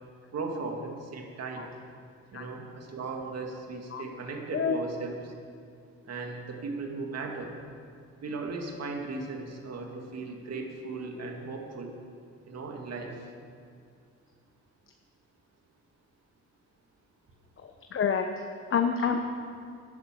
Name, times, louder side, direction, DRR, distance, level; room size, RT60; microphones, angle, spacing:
voice 1, 0.3-1.6 2.3-5.4 6.1-7.5 8.2-11.9 12.5-13.2, right 3 dB, 55° right, 2 dB, 2.4 m, -37 dB
voice 2, 17.9-18.3 18.7-19.2, left 7 dB, 45° left, 4 dB, 1.0 m, -27 dB
12.0 x 11.0 x 7.6 m, 2.3 s
cardioid pair, 90°, 30 cm